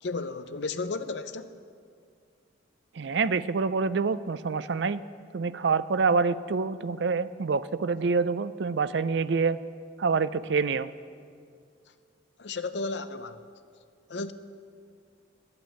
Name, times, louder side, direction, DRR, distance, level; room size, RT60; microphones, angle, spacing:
voice 1, 0.0-1.5 12.4-13.4 14.1-14.3, left 3 dB, 60° left, 0.6 m, -33 dB
voice 2, 3.0-5.0 5.3-9.6 10.0-10.9, right 4 dB, 60° right, 0.4 m, -26 dB
12.5 x 8.8 x 9.1 m
head